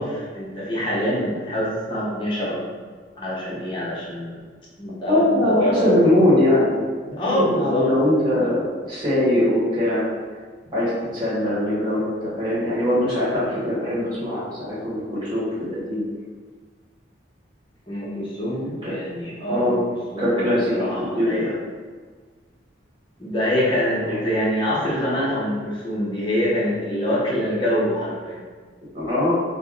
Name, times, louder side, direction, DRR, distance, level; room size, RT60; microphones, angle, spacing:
voice 1, 0.0-2.7 3.2-4.4 4.8-5.9 7.1-7.8 8.3-8.5 17.9-19.9 20.1-21.5 23.2-28.4, equal, 25° left, -7 dB, 0.9 m, -25 dB
voice 2, 5.1-10.0 10.7-16.0 18.8-18.9 19.5-19.8 20.2-20.7 21.2-21.6 24.0-24.3 28.9-29.3, left 1 dB, 25° right, -9 dB, 1.2 m, -21 dB
3.4 x 2.1 x 3.8 m, 1.5 s
head